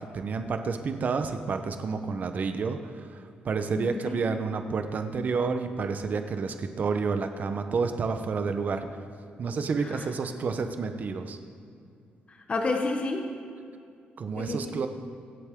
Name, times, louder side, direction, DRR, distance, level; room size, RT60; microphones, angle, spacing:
voice 1, 0.0-8.9 9.4-11.4 14.2-14.9, right 4 dB, 50° right, 7 dB, 1.0 m, -30 dB
voice 2, 3.8-4.2 9.8-10.1 12.3-13.3 14.4-14.8, left 2 dB, 35° left, 3 dB, 1.3 m, -31 dB
24.0 x 8.0 x 3.8 m, 2.4 s
cardioid pair, 115°, 4 cm